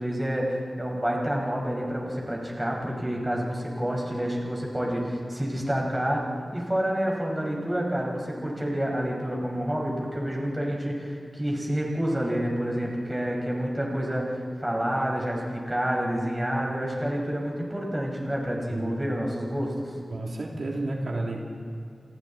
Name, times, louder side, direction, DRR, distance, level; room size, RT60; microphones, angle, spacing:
voice 1, 0.0-6.2 6.5-19.9, equal, 10° right, -2 dB, 5.5 m, -28 dB
voice 2, 20.1-21.4, right 2 dB, 70° right, -1 dB, 3.0 m, -31 dB
28.5 x 28.0 x 4.4 m, 2.3 s
wide cardioid pair, 80°, 0 cm